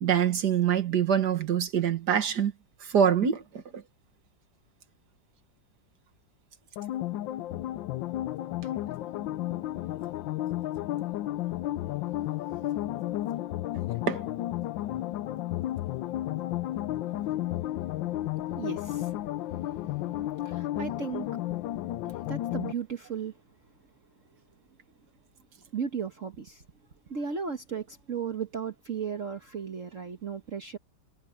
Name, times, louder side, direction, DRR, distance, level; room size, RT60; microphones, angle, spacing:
voice 1, 0.0-2.5 2.8-3.8 14.1-14.2, right 8 dB, 60° right, 2.0 m, -25 dB
sound 1, 6.8-22.7, left 14 dB, 90° left, 1.4 m, -32 dB
voice 2, 18.5-19.2 19.7-21.3 22.0-23.4 25.7-26.6 27.1-30.8, right 6 dB, 45° right, 1.5 m, -36 dB
omnidirectional pair, 2.0 m